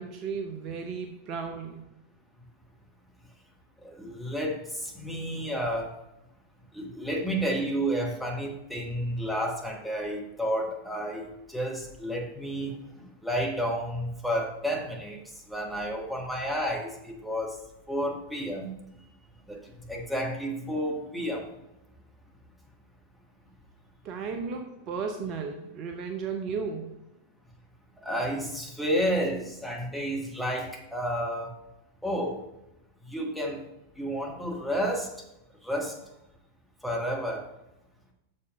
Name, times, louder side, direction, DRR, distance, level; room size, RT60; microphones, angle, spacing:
voice 1, 0.0-1.8 24.0-26.9, right 5 dB, 40° right, 4 dB, 0.8 m, -34 dB
voice 2, 3.8-5.9 6.7-15.2 15.5-17.5 17.9-18.7 19.5-19.6 19.9-21.5 28.0-31.5 32.0-32.4 33.1-33.6 34.0-35.1 35.6-35.9 36.8-37.4, equal, ahead, -1 dB, 1.5 m, -31 dB
6.7 x 5.3 x 5.4 m, 0.91 s
figure-of-eight pair, 90°, 0 cm